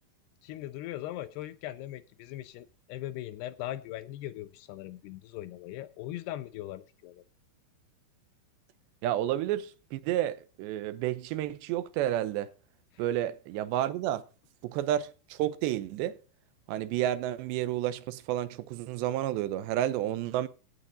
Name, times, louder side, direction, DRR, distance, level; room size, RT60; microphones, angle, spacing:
voice 1, 0.4-7.2 12.9-13.0, left 14 dB, 85° left, 2.3 m, -40 dB
voice 2, 9.0-12.5 13.0-14.2 14.6-16.2 16.7-20.5, right 12 dB, 80° right, 2.8 m, -30 dB
17.5 x 7.4 x 4.0 m
omnidirectional pair, 5.6 m